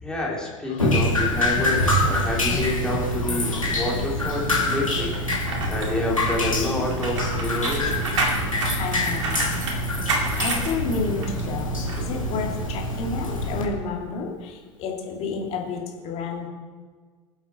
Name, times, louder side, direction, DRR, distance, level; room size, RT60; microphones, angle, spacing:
voice 1, 0.0-5.2 5.7-8.3, left 2 dB, 5° left, -4 dB, 3.4 m, -28 dB
Drip, 0.8-13.6, left 1 dB, 85° left, 2.4 m, -25 dB
sound 1, 5.1-11.4 11.9-12.0, right 2 dB, 65° right, 2.3 m, -29 dB
voice 2, 8.8-9.5 10.4-16.5, left 4 dB, 40° left, 0 dB, 2.6 m, -30 dB
20.5 x 8.0 x 4.4 m, 1.5 s
figure-of-eight pair, 80°, 17 cm